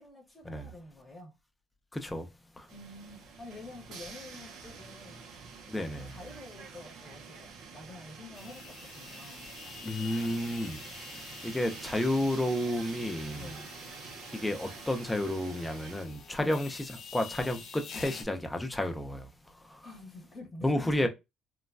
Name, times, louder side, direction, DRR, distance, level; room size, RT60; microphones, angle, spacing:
voice 1, 0.0-1.3 2.7-5.3 6.1-9.5 13.3-13.7 16.4-16.6 19.8-21.1, left 2 dB, 30° left, 0.9 m, -48 dB
voice 2, 1.9-2.3 2.6-2.7 5.7-6.2 9.8-10.8 11.1-13.6 14.3-19.8 20.6-21.1, left 1 dB, 10° left, 0.5 m, -31 dB
sound 1, 2.7-16.1, right 5 dB, 75° right, 0.6 m, -47 dB
sound 2, 8.3-18.2, left 6 dB, 60° left, 0.5 m, -48 dB
3.1 x 2.1 x 2.4 m
cardioid pair, 120°, 0 cm